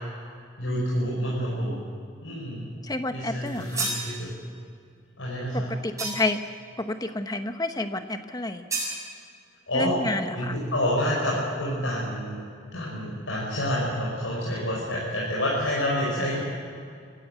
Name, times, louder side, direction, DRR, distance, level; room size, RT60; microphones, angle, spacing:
voice 1, 0.6-1.8 2.2-2.7 3.1-4.3 5.2-5.7 9.7-10.0 10.3-12.4 12.7-16.4, equal, 80° left, -6 dB, 5.5 m, -28 dB
voice 2, 2.8-3.9 5.5-6.4 6.8-8.6 9.7-10.6, left 2 dB, 20° left, 8 dB, 1.0 m, -30 dB
sound 1, 3.5-4.1 6.0-6.4 8.7-9.0, right 3 dB, 15° right, 6.6 m, -30 dB
25.5 x 14.5 x 8.1 m, 2.4 s
head